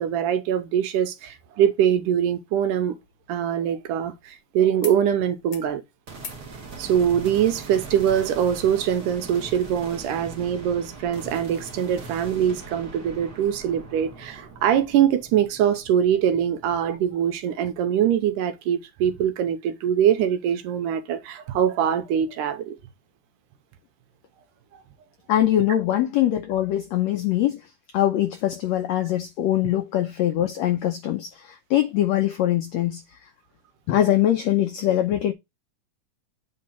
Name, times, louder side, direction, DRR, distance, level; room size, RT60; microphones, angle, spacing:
voice 1, 0.0-2.9 3.3-5.8 6.8-22.8, right 9 dB, 75° right, 2.2 m, -23 dB
sound 1, 2.6-4.4 4.8-5.0 5.3-5.7 6.2-6.5 7.8-7.9, left 6 dB, 60° left, 1.3 m, -43 dB
sound 2, 6.1-17.4, right 4 dB, 40° right, 1.7 m, -41 dB
voice 2, 25.3-27.6 27.9-33.0 33.9-35.3, left 12 dB, 90° left, 1.5 m, -22 dB
8.8 x 3.7 x 4.2 m
omnidirectional pair, 4.0 m